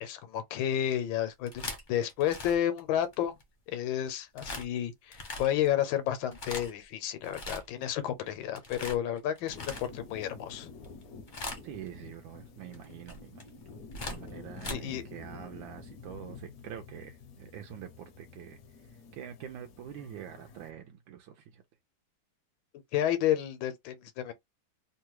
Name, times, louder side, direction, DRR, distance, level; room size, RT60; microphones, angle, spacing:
voice 1, 0.0-3.4 3.7-10.7 14.7-15.0 22.9-24.3, left 11 dB, 80° left, 1.4 m, -31 dB
sound 1, 1.3-3.4 4.4-4.7 5.1-5.7 6.2-6.8 7.2-7.9 8.2-10.2 10.8-11.0 11.3-11.9 12.7-14.7, left 2 dB, 40° left, 0.7 m, -40 dB
sound 2, 9.5-20.7, left 4 dB, 65° left, 0.9 m, -49 dB
voice 2, 11.6-21.6, right 10 dB, 80° right, 1.4 m, -46 dB
3.5 x 2.2 x 3.0 m
omnidirectional pair, 2.1 m